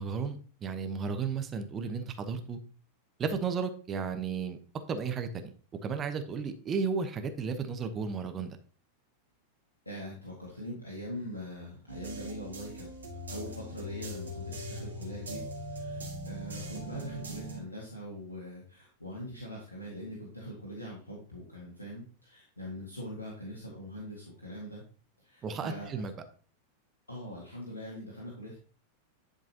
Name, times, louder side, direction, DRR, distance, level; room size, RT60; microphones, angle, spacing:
voice 1, 0.0-2.6 3.2-4.6 4.9-5.5 5.8-8.6 25.4-26.1, right 5 dB, 25° right, 8 dB, 1.0 m, -33 dB
voice 2, 9.9-12.9 13.3-24.8 25.2-26.0 27.1-28.6, equal, 80° left, -3 dB, 1.8 m, -42 dB
sound 1, 11.9-17.6, equal, 75° right, 2.6 m, -40 dB
11.0 x 5.2 x 2.9 m, 0.40 s
figure-of-eight pair, 90°, 0 cm